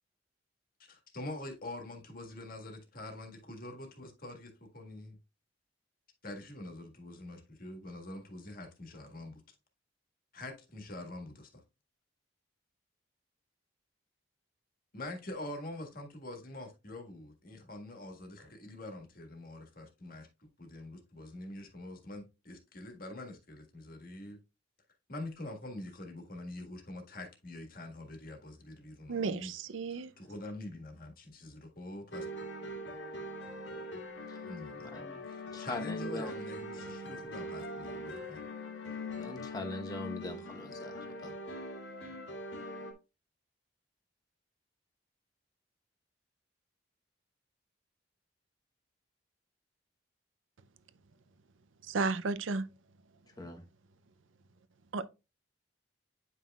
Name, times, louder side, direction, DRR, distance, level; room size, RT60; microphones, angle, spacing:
voice 1, 0.9-5.2 6.2-9.4 10.3-11.6 14.9-20.3 20.6-24.4 25.1-29.5 29.9-32.3 34.4-34.9 35.3-38.4, left 1 dB, 50° left, 1.7 m, -45 dB
voice 2, 29.1-30.1 51.8-52.7 54.9-55.0, right 4 dB, 85° right, 0.5 m, -33 dB
sound 1, 32.1-42.9, left 1 dB, 70° left, 1.9 m, -42 dB
voice 3, 34.8-35.2 35.5-36.3 39.2-41.3 53.4-53.6, left 1 dB, 20° left, 1.0 m, -41 dB
9.3 x 5.6 x 2.3 m
head